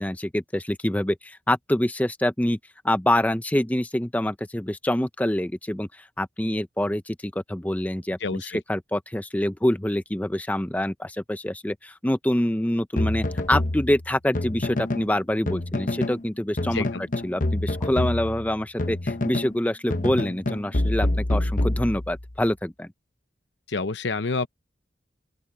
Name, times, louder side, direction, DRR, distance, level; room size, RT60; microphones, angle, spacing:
voice 1, 0.0-2.6 2.8-22.9, left 1 dB, 10° left, 0.5 m, -26 dB
voice 2, 8.2-8.6 16.7-17.0 23.7-24.5, left 4 dB, 70° left, 0.7 m, -28 dB
sound 1, 13.0-15.1 15.5-16.2 16.6-19.6 19.9-22.3, left 1 dB, 45° left, 1.0 m, -27 dB
open air
head